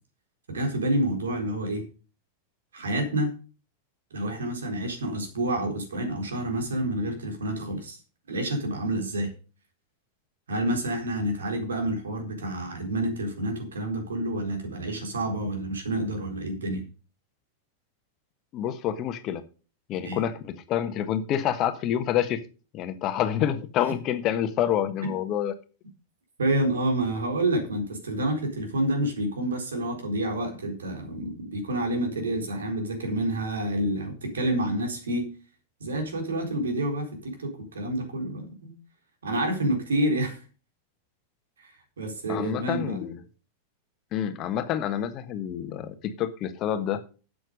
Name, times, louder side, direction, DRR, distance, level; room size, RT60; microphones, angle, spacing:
voice 1, 0.5-1.8 2.7-3.3 4.1-8.0 8.3-9.3 10.5-16.8 20.0-20.2 25.0-25.1 26.4-35.3 35.8-38.7 39.2-40.4 41.6-43.0, right 1 dB, 70° right, 4 dB, 4.1 m, -28 dB
voice 2, 18.5-19.4 19.9-22.4 22.7-25.5 42.3-43.2 44.1-47.0, left 10 dB, 35° left, 9 dB, 1.4 m, -28 dB
12.0 x 8.0 x 5.4 m, 0.36 s
figure-of-eight pair, 90°, 0 cm